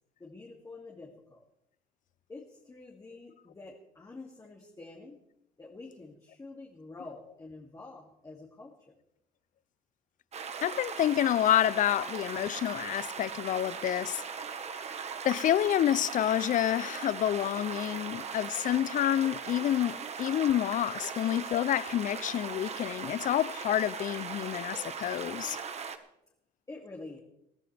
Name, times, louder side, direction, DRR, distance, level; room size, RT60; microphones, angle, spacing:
voice 1, 0.2-1.4 2.3-5.2 5.6-8.7 26.7-27.2, left 3 dB, 20° left, 2.5 m, -47 dB
sound 1, 10.3-26.0, right 6 dB, 40° right, 1.4 m, -39 dB
voice 2, 10.6-14.2 15.2-25.6, left 11 dB, 50° left, 0.5 m, -28 dB
21.5 x 14.0 x 3.4 m
cardioid pair, 110°, 17 cm